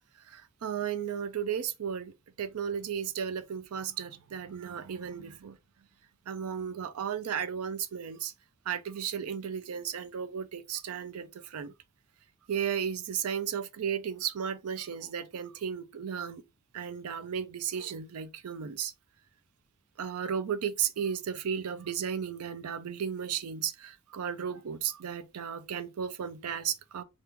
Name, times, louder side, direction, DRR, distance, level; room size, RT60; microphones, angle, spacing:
voice 1, 0.3-5.6 6.3-8.3 8.7-11.7 12.5-16.4 16.7-18.9 20.0-27.0, right 8 dB, 85° right, 0.4 m, -34 dB
2.9 x 2.4 x 3.5 m
head